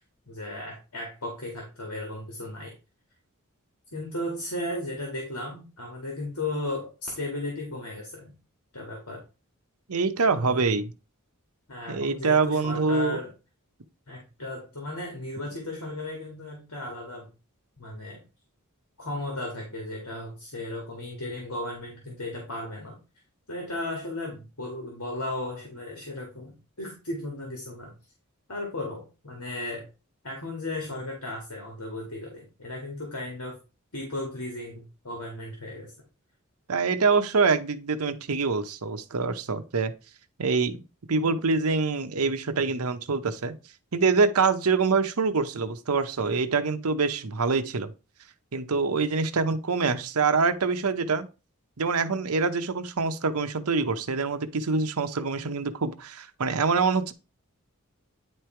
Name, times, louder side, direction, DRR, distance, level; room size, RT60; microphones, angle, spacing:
voice 1, 0.3-2.7 3.9-8.3 8.7-9.2 10.3-10.8 11.7-13.3 14.1-17.3 17.8-18.2 19.0-23.0 23.5-27.9 28.5-29.9 30.2-33.6 33.9-35.9, left 1 dB, 80° left, 2.0 m, -35 dB
voice 2, 9.9-10.9 11.9-13.2 36.7-39.9 40.4-40.8 41.1-43.5 43.9-47.9 48.5-51.3 51.8-57.1, right 4 dB, 75° right, 0.8 m, -25 dB
9.6 x 3.3 x 4.5 m
head